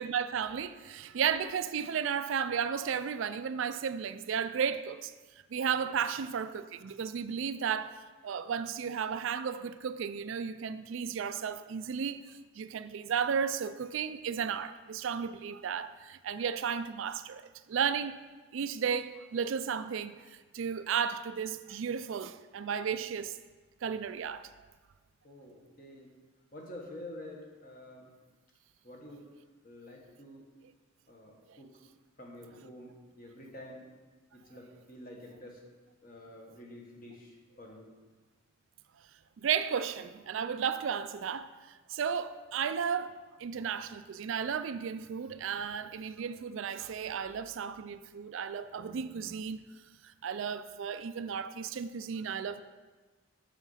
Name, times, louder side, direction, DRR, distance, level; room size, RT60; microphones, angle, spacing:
voice 1, 0.0-5.1 5.5-8.0 8.2-12.2 12.5-18.2 18.5-23.4 23.8-24.5 31.5-31.6 39.4-43.1 43.4-49.6 50.0-52.6, right 7 dB, 65° right, 0.4 m, -34 dB
voice 2, 5.7-6.0 25.2-26.1 26.5-28.1 28.8-29.3 29.6-30.5 31.1-31.7 32.2-33.9 34.3-35.6 36.0-37.9, left 1 dB, 40° left, 1.5 m, -48 dB
7.2 x 6.6 x 5.6 m
head